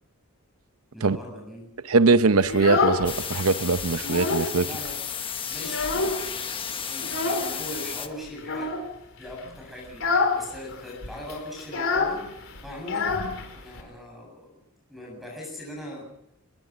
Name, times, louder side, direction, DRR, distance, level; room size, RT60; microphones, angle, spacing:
voice 1, 0.9-1.7 4.6-5.0 5.5-6.1 6.8-8.8 9.2-10.1 10.3-12.2 12.6-13.2 13.5-14.5 14.9-16.1, left 1 dB, ahead, 7.6 m, -39 dB
voice 2, 1.8-4.7, right 3 dB, 80° right, 0.8 m, -21 dB
Child speech kid speaking, 2.4-3.4 3.8-4.6 4.8-4.9 5.3-6.4 7.0-7.5 8.4-8.9 9.3-9.5 9.9-10.4 10.7-10.8 11.0-13.8, left 3 dB, 65° left, 4.4 m, -27 dB
sound 1, 3.0-8.1, left 7 dB, 25° left, 1.2 m, -33 dB
23.5 x 20.5 x 6.2 m
head